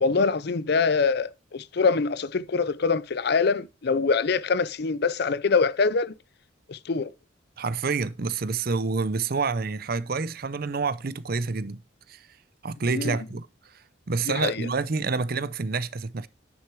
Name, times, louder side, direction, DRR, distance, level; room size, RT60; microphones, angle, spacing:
voice 1, 0.0-6.1 6.7-7.1 12.9-13.2 14.3-14.7, left 4 dB, 55° left, 0.5 m, -24 dB
voice 2, 7.6-11.8 12.1-12.2 12.6-13.5 14.1-16.3, right 4 dB, 50° right, 0.6 m, -28 dB
10.0 x 6.5 x 4.6 m
head